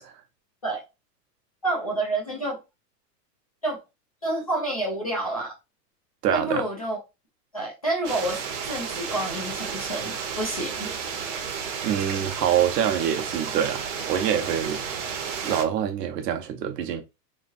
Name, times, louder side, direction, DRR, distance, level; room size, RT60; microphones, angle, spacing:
voice 1, 1.6-2.6 3.6-3.8 4.2-5.5 6.3-7.0 7.5-8.4 8.7-10.9, right 2 dB, 25° left, 0.3 m, -28 dB
voice 2, 6.2-6.6 11.8-14.8 15.4-17.0, right 9 dB, 75° right, 1.0 m, -25 dB
sound 1, 8.0-15.6, right 6 dB, 45° right, 0.8 m, -32 dB
4.4 x 3.2 x 2.5 m
supercardioid pair, 180°, 49 cm